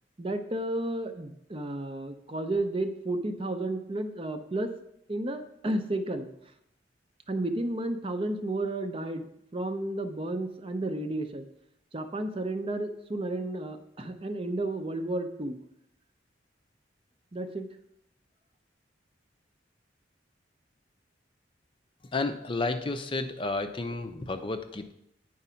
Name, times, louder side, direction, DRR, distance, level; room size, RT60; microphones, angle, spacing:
voice 1, 0.2-4.7 5.1-6.3 7.3-9.2 9.5-11.5 11.9-15.6 17.3-17.7, right 1 dB, 30° right, 8 dB, 0.6 m, -32 dB
voice 2, 22.1-24.9, left 3 dB, 25° left, 8 dB, 0.5 m, -31 dB
9.4 x 4.9 x 5.6 m, 0.78 s
head